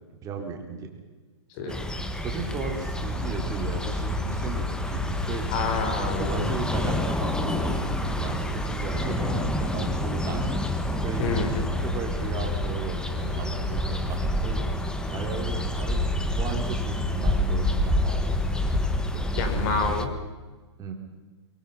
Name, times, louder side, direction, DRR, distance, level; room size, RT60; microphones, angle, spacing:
voice 1, 0.2-1.0 1.6-1.8 2.2-5.4 5.9-10.6 11.0-11.3 11.8-14.6 15.1-16.0 16.3-18.4 19.1-19.3 20.8-20.9, right 5 dB, 20° right, 2 dB, 4.2 m, -35 dB
sound 1, 1.7-20.1, left 1 dB, 5° left, 1.3 m, -28 dB
voice 2, 5.5-6.5 11.2-11.6 19.3-20.1, left 3 dB, 40° left, 7 dB, 4.4 m, -28 dB
24.0 x 23.0 x 5.8 m, 1.3 s
hypercardioid pair, 135°, 15 cm